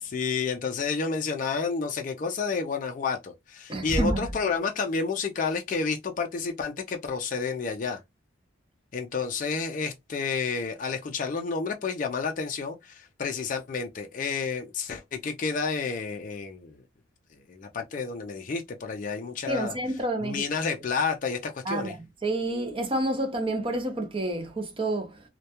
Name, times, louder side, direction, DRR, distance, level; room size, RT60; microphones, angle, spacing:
voice 1, 0.0-8.0 8.9-16.8 17.5-19.8 20.2-22.0, left 5 dB, 40° left, 0.3 m, -30 dB
voice 2, 3.7-4.3 19.5-20.4 21.7-22.0 22.2-25.2, right 1 dB, 25° right, 0.5 m, -28 dB
2.2 x 2.1 x 2.8 m
head